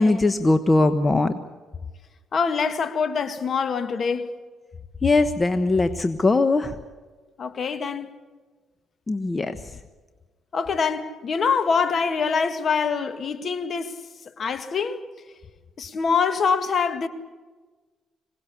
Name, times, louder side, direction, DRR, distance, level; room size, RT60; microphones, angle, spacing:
voice 1, 0.0-1.3 5.0-6.7 9.1-9.6, left 2 dB, 25° left, 1.1 m, -20 dB
voice 2, 2.3-4.3 7.4-8.1 10.5-14.0 14.4-15.0 15.8-17.1, left 5 dB, 50° left, 1.9 m, -24 dB
26.0 x 18.0 x 8.5 m
cardioid pair, 90°, 0 cm